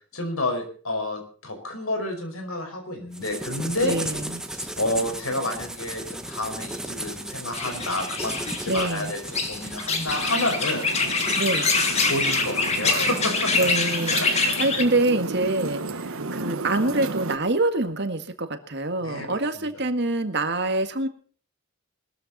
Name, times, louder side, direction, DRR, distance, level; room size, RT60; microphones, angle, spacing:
voice 1, 0.1-4.0 4.5-9.2 9.5-10.8 12.0-13.5 14.1-14.3 19.0-19.7, left 1 dB, 90° left, 5 dB, 5.3 m, -29 dB
sound 1, 3.1-13.8, right 1 dB, 5° right, 1.3 m, -36 dB
voice 2, 3.8-4.4 8.7-9.1 11.4-11.7 13.5-21.1, right 2 dB, 55° right, 8 dB, 1.8 m, -25 dB
sound 2, 7.5-14.8, left 4 dB, 30° left, 2.1 m, -25 dB
sound 3, 10.0-17.4, right 3 dB, 80° right, 1.2 m, -33 dB
20.5 x 13.5 x 4.2 m, 0.42 s
head